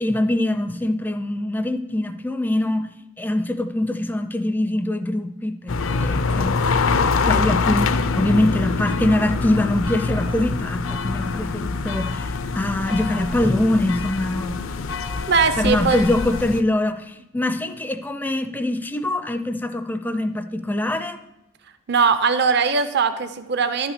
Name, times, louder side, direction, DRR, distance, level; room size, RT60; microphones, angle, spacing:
voice 1, 0.0-2.9 3.2-6.6 7.3-14.6 15.6-21.2, left 1 dB, 10° left, 10 dB, 0.4 m, -23 dB
sound 1, 5.7-16.6, left 4 dB, 70° left, 0.5 m, -24 dB
voice 2, 15.3-16.0 21.9-23.9, right 5 dB, 50° right, 10 dB, 0.6 m, -20 dB
11.5 x 5.9 x 6.7 m, 0.92 s
head